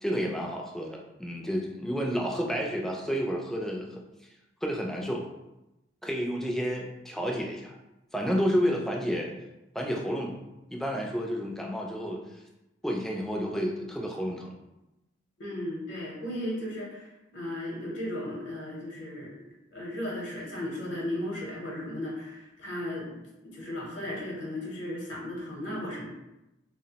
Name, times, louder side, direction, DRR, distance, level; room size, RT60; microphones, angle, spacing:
voice 1, 0.0-4.0 4.6-5.3 6.0-7.7 8.1-9.3 9.7-10.4 10.7-12.2 12.8-14.5, equal, ahead, -1 dB, 0.3 m, -30 dB
voice 2, 15.4-26.1, left 1 dB, 65° left, -3 dB, 0.7 m, -36 dB
2.7 x 2.0 x 2.7 m, 0.94 s
head